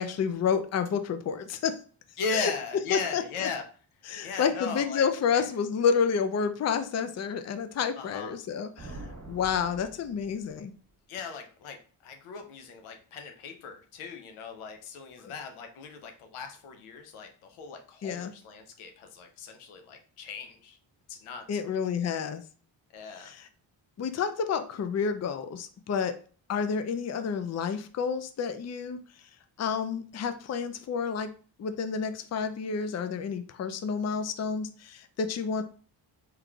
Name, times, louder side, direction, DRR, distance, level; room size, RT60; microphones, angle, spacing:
voice 1, 0.0-1.8 2.3-2.5 2.9-3.5 4.1-9.0 9.3-10.7 15.2-15.3 18.0-18.3 21.5-22.4 23.2-23.5 24.0-26.1 26.5-29.0 29.6-31.3 31.6-35.6, left 6 dB, 35° left, 9 dB, 0.5 m, -29 dB
voice 2, 2.2-3.6 4.2-5.0 5.3-5.4 7.9-8.3 11.1-20.8 21.1-21.6 22.9-23.3, left 5 dB, 90° left, 5 dB, 0.7 m, -38 dB
sound 1, 8.8-10.7, right 2 dB, 40° right, 1.2 m, -45 dB
3.5 x 3.0 x 2.3 m, 0.41 s
supercardioid pair, 50°, 49 cm